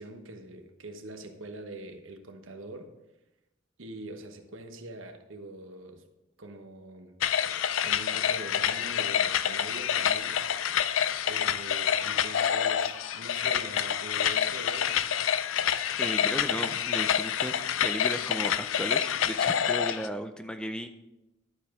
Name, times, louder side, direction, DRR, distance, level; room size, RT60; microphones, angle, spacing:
voice 1, 0.0-2.9 3.8-6.0 6.4-7.2 7.8-10.4 11.3-15.1, right 2 dB, 80° right, 6 dB, 1.1 m, -43 dB
sound 1, 7.2-20.1, left 9 dB, 80° left, 0.4 m, -27 dB
voice 2, 16.0-17.5 17.8-20.9, equal, 5° left, 8 dB, 0.5 m, -35 dB
11.5 x 5.1 x 4.8 m, 0.93 s
head